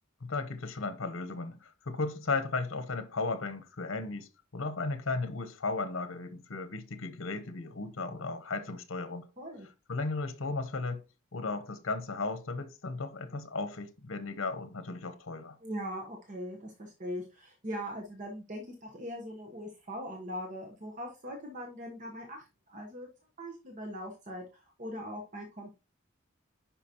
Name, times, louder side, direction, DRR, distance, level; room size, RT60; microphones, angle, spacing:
voice 1, 0.2-9.3 9.9-11.0 11.3-15.6, left 3 dB, 80° left, 0.9 m, -35 dB
voice 2, 9.4-9.7 15.6-23.1 23.4-25.7, equal, 40° right, 1.1 m, -41 dB
10.0 x 5.1 x 2.9 m
head